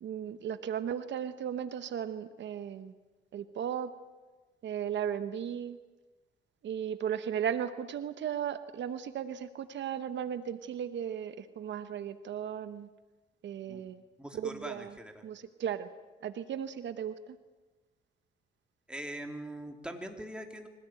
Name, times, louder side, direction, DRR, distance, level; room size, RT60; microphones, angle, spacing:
voice 1, 0.0-2.9 3.3-3.9 4.6-5.8 6.6-12.9 13.4-14.0 14.4-14.9 15.2-15.9 16.2-17.4, right 9 dB, 65° right, 11 dB, 1.0 m, -36 dB
voice 2, 14.2-15.2 18.9-20.7, right 1 dB, 5° right, 3 dB, 3.4 m, -42 dB
25.0 x 17.5 x 9.0 m, 1.3 s
cardioid pair, 90°, 20 cm